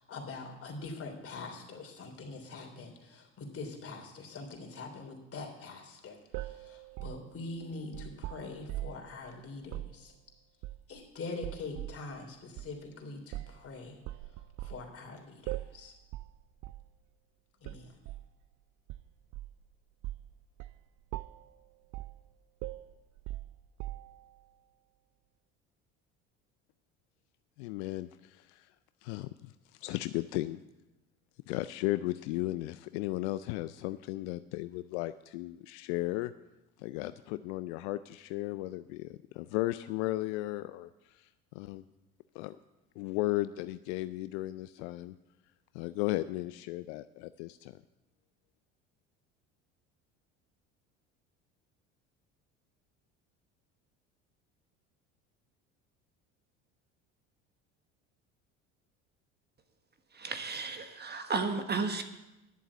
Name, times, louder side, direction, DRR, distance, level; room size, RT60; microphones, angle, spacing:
voice 1, 0.0-10.1 10.9-14.0 14.6-15.9 17.6-18.0, left 3 dB, 40° left, 2 dB, 3.4 m, -44 dB
sound 1, 6.3-9.1 9.6-10.0 10.6-11.0 11.4-12.0 12.6-12.7 13.3-13.6 14.0-14.8 15.5-15.8 16.1-16.3 16.6-16.9 17.6-18.3 18.9-19.6 20.0-20.3 20.6-20.8 21.1-21.5 21.9-22.2 22.6-24.3, right 16 dB, 55° right, 0.5 m, -41 dB
voice 2, 27.6-28.7 29.0-30.6 31.5-36.3 36.8-41.8 42.3-42.6 43.0-45.1 45.7-47.8, left 17 dB, 70° left, 13 dB, 0.5 m, -35 dB
voice 3, 60.1-62.0, right 4 dB, 30° right, 7 dB, 1.3 m, -33 dB
11.0 x 7.3 x 8.3 m, 0.99 s
hypercardioid pair, 75°, 35 cm